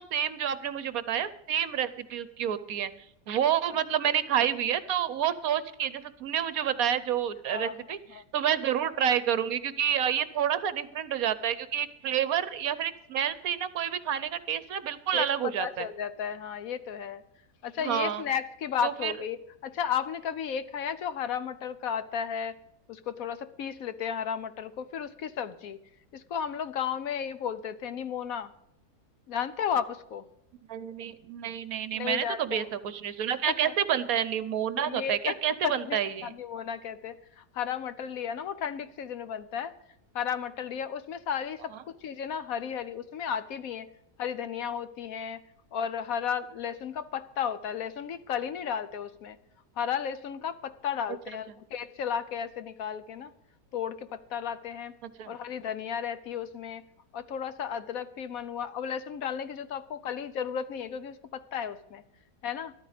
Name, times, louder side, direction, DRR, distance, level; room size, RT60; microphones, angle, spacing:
voice 1, 0.0-2.9 3.3-15.9 17.8-18.2 18.8-19.1 30.7-36.3 55.2-55.3, right 9 dB, 65° right, 14 dB, 1.1 m, -29 dB
voice 2, 7.4-8.2 15.1-17.2 17.6-22.6 22.9-25.8 26.1-28.5 29.3-30.2 31.9-32.7 33.5-33.7 34.8-35.3 35.6-39.7 40.1-43.9 44.2-45.4 45.7-49.4 49.8-53.3 53.7-54.9 55.3-56.8 57.1-62.0 62.4-62.7, left 8 dB, 65° left, 13 dB, 1.0 m, -34 dB
13.5 x 12.5 x 5.0 m, 0.82 s
omnidirectional pair, 1.7 m